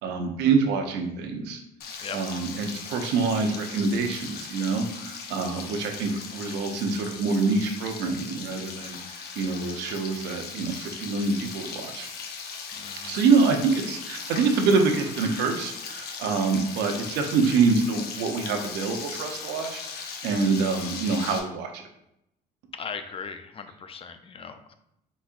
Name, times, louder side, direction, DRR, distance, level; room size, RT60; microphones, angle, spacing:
voice 1, 0.0-1.6 2.1-12.1 13.0-21.8, right 4 dB, 90° right, 4 dB, 0.7 m, -26 dB
Frying (food), 1.8-21.4, left 5 dB, 70° left, 0.7 m, -38 dB
voice 2, 12.8-13.2 22.7-24.7, left 5 dB, 35° left, 9 dB, 0.4 m, -38 dB
4.6 x 4.1 x 2.5 m, 0.80 s
cardioid pair, 110°, 17 cm